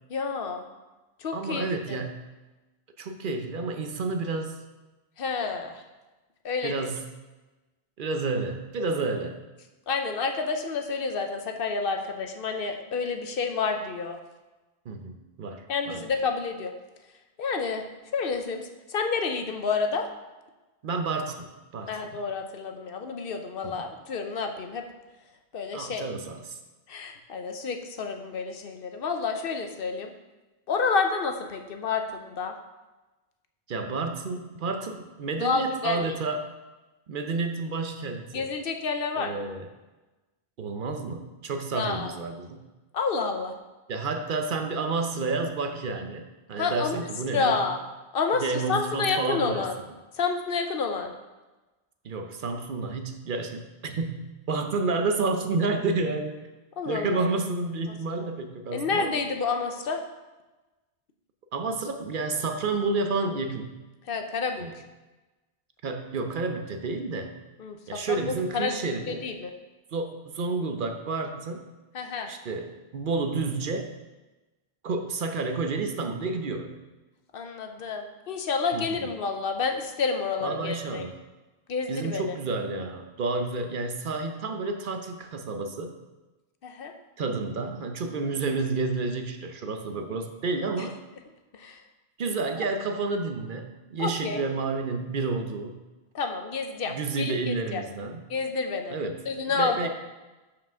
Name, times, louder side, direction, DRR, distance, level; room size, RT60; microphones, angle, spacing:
voice 1, 0.1-0.7 1.2-2.0 5.2-5.8 6.4-6.9 9.9-14.2 15.7-16.7 17.4-17.8 18.1-20.1 21.9-24.8 25.5-26.0 26.9-30.1 30.7-32.5 35.4-36.1 38.3-39.3 41.7-42.2 42.9-43.5 46.6-47.0 47.3-47.8 48.1-48.4 48.7-49.7 50.1-51.1 56.8-57.2 58.2-58.3 58.7-60.0 64.1-64.7 67.6-67.8 68.1-68.8 69.1-69.5 71.9-72.3 77.3-81.0 81.7-82.2 86.6-86.9 91.5-91.8 94.0-94.4 96.1-97.8 98.3-98.9 99.3-99.8, left 4 dB, 65° left, 5 dB, 0.9 m, -29 dB
voice 2, 1.3-2.3 3.0-4.6 6.6-7.0 8.0-9.4 14.9-16.1 20.8-22.2 23.6-23.9 25.7-26.6 33.7-36.5 37.1-38.5 39.2-39.7 40.6-42.6 43.9-47.6 48.3-49.7 52.0-56.4 56.9-59.2 61.5-63.7 64.6-64.7 65.8-67.3 67.9-69.3 69.9-71.7 72.3-73.9 74.8-76.8 78.7-79.0 80.4-81.2 81.9-85.9 87.2-91.0 92.2-95.8 96.9-98.2 98.9-99.2 99.5-99.9, right 3 dB, 60° right, 6 dB, 0.8 m, -30 dB
5.7 x 4.9 x 6.0 m, 1.1 s
omnidirectional pair, 1.0 m